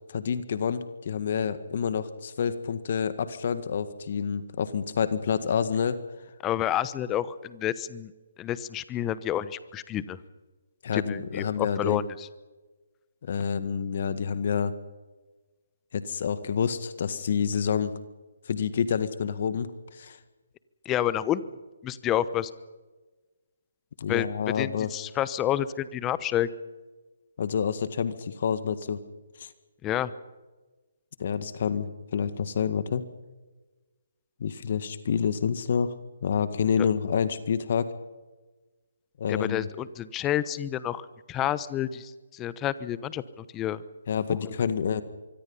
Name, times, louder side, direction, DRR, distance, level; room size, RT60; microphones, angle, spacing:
voice 1, 0.1-6.0 10.8-12.0 13.2-14.7 15.9-17.9 18.5-20.2 24.0-24.9 27.4-29.0 29.4-29.5 31.2-33.0 34.4-35.9 36.2-37.9 39.2-39.7 44.1-45.0, left 7 dB, 50° left, 12 dB, 1.9 m, -28 dB
voice 2, 6.4-8.1 8.4-10.2 10.9-12.3 20.8-21.4 21.8-22.5 24.1-24.3 24.6-26.5 29.8-30.1 36.8-36.9 39.3-43.8, left 11 dB, 15° left, 16 dB, 1.0 m, -29 dB
25.0 x 23.5 x 5.7 m, 1.2 s
figure-of-eight pair, 145°, 0 cm